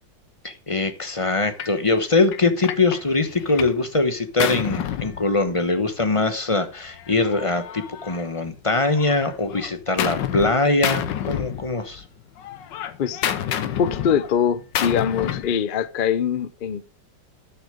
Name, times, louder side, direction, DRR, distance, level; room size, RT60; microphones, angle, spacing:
voice 1, 0.4-12.0, left 3 dB, 25° left, 0.9 m, -22 dB
Gunshot gunfire, 1.6-1.8 2.3-3.8 4.1-5.8 6.8-8.6 9.0-10.5 10.8-12.1 12.4-15.6, left 10 dB, 85° left, 1.6 m, -29 dB
voice 2, 13.8-16.9, left 8 dB, 65° left, 0.5 m, -23 dB
12.5 x 6.5 x 5.1 m
omnidirectional pair, 1.9 m